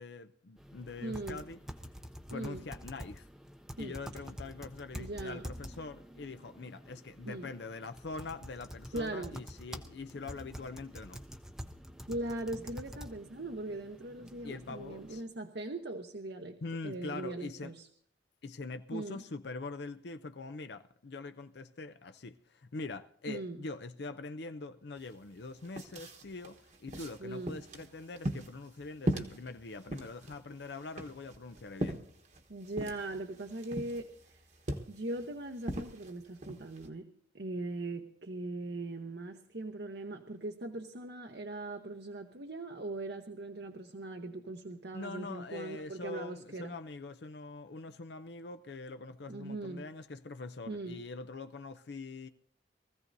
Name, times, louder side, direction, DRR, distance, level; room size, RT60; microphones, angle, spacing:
voice 1, 0.0-1.6 2.3-3.3 3.8-11.2 14.4-15.2 16.6-17.7 18.4-32.0 44.9-52.3, left 3 dB, 65° left, 0.6 m, -43 dB
sound 1, 0.6-15.2, equal, 5° right, 0.6 m, -47 dB
voice 2, 1.0-1.5 2.3-2.6 3.8-4.2 4.9-5.5 7.2-7.5 8.9-9.4 12.1-16.6 16.8-17.9 18.9-19.2 23.3-23.6 27.2-27.6 32.5-34.4 34.9-37.1 37.3-46.7 49.3-49.9 50.7-51.0, right 2 dB, 60° right, 0.9 m, -40 dB
sound 2, 25.0-25.1 25.4-36.9, right 1 dB, 40° right, 1.2 m, -40 dB
23.5 x 15.0 x 2.7 m
head